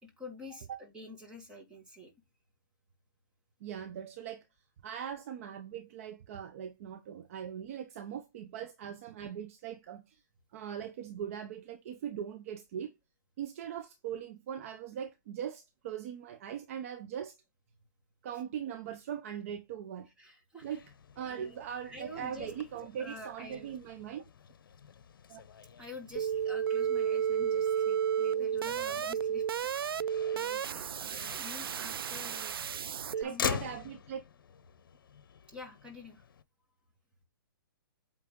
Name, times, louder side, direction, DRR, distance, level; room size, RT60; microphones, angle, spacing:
voice 1, 0.0-2.1 20.2-20.7 21.3-21.6 21.8-22.5 22.8-23.8 25.8-32.6 33.2-33.5 35.5-36.3, left 2 dB, 5° right, 2.0 m, -48 dB
voice 2, 3.6-4.4 4.8-10.2 10.5-12.9 13.4-17.4 18.2-20.1 20.6-20.8 21.2-24.3 25.3-25.4 28.3-28.5 32.9-34.2, right 9 dB, 40° right, 0.8 m, -40 dB
Motor vehicle (road), 20.6-36.4, left 7 dB, 70° left, 0.9 m, -45 dB
sound 1, 26.2-33.2, right 8 dB, 90° right, 0.4 m, -32 dB
8.5 x 3.3 x 3.7 m
hypercardioid pair, 160°, 12 cm